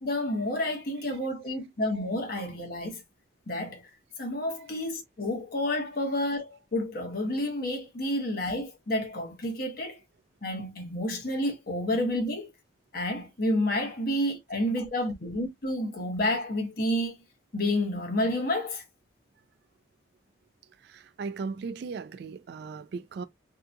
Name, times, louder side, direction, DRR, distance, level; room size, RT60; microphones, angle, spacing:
voice 1, 0.0-3.0 3.5-3.8 4.2-10.0 10.4-12.5 12.9-17.1 17.5-18.8, left 1 dB, 50° left, 0.9 m, -30 dB
voice 2, 20.8-23.2, right 4 dB, 60° right, 0.3 m, -37 dB
2.7 x 2.2 x 2.5 m
head